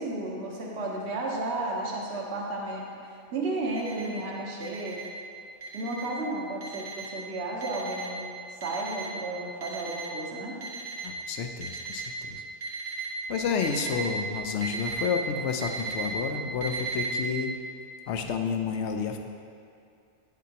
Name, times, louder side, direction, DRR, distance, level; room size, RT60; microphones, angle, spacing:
voice 1, 0.0-2.8 3.3-5.0 5.7-8.3 8.6-10.6, right 2 dB, 60° right, -2 dB, 1.3 m, -33 dB
Alarm, 3.7-4.1 4.6-5.1 5.6-6.1 6.6-7.1 7.6-8.1 8.6-9.1 9.6-10.1 10.6-11.1 11.6-12.1 12.6-13.1 13.6-14.1 14.6-15.1 15.6-16.1 16.6-17.1, right 5 dB, 80° right, 1.6 m, -35 dB
voice 2, 11.0-12.4 13.3-17.5 18.1-19.2, left 6 dB, 70° left, 5 dB, 0.9 m, -30 dB
8.5 x 7.3 x 2.9 m, 2.4 s
omnidirectional pair, 1.3 m